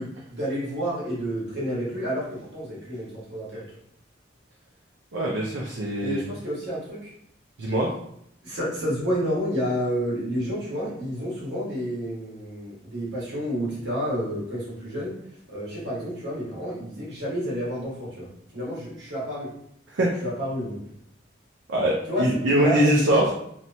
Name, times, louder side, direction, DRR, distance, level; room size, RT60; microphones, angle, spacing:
voice 1, 0.0-3.7 6.0-7.1 8.4-15.1 15.5-18.3 18.5-19.5 20.2-20.8 22.1-22.3 22.6-23.3, equal, 65° right, -7 dB, 1.3 m, -30 dB
voice 2, 5.1-6.2 7.6-7.9 19.9-20.1 21.7-23.3, right 1 dB, 80° right, -3 dB, 0.5 m, -22 dB
2.9 x 2.1 x 2.6 m, 0.70 s
head